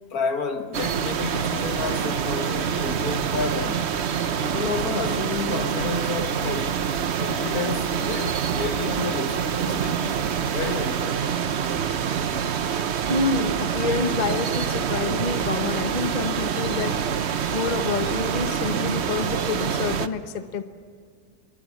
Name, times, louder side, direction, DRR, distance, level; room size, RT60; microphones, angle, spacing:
voice 1, 0.1-3.9 4.3-6.8 7.2-11.2, left 4 dB, 60° left, 2.0 m, -30 dB
sound 1, 0.7-20.1, right 8 dB, 50° right, 0.9 m, -26 dB
voice 2, 13.1-17.0 17.5-20.6, left 5 dB, 30° left, 1.0 m, -27 dB
26.5 x 23.5 x 7.2 m
omnidirectional pair, 1.8 m